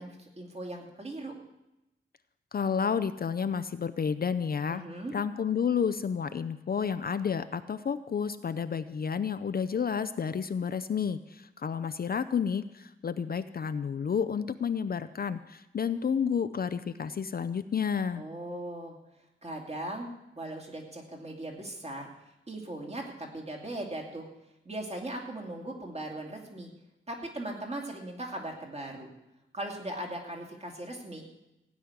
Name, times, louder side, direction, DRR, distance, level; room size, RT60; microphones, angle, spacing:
voice 1, 0.0-1.3 4.7-5.1 18.2-19.0 19.4-20.1 20.4-22.1 22.5-24.3 24.6-26.7 27.1-29.1 29.5-31.4, right 1 dB, 30° right, 1 dB, 2.4 m, -39 dB
voice 2, 2.5-4.8 5.1-18.2, left 7 dB, 45° left, 12 dB, 0.5 m, -30 dB
16.0 x 6.3 x 9.5 m, 0.94 s
wide cardioid pair, 160°, 21 cm